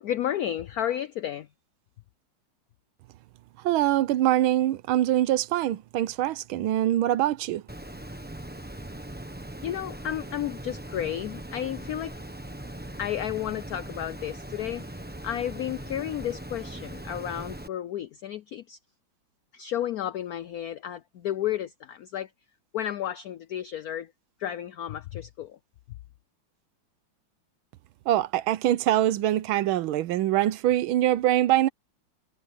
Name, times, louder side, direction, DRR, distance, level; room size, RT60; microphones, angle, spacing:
voice 1, 0.0-1.5 9.6-12.2 13.0-14.8 15.2-18.8 19.5-22.3 22.7-24.1 24.4-25.6, left 11 dB, 90° left, 0.8 m, -32 dB
voice 2, 3.6-7.6 28.1-31.7, right 13 dB, 90° right, 1.5 m, -24 dB
Water, 7.7-17.7, right 1 dB, 5° right, 0.8 m, -40 dB
omnidirectional pair, 2.2 m